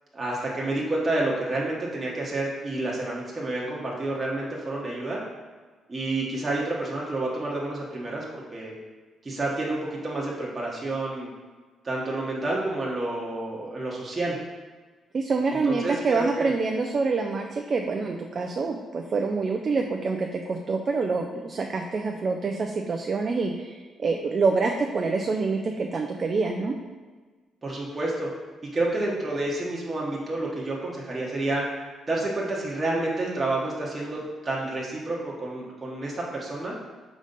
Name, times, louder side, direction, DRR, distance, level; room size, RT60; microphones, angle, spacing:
voice 1, 0.1-5.2 5.9-8.7 9.2-11.3 11.8-14.4 15.6-16.5 27.6-28.3 28.6-31.6 32.1-36.7, right 2 dB, 25° right, -4 dB, 1.1 m, -29 dB
voice 2, 15.1-26.7, right 4 dB, 45° right, 3 dB, 0.5 m, -26 dB
5.0 x 4.0 x 5.2 m, 1.4 s
cardioid pair, 90°, 0 cm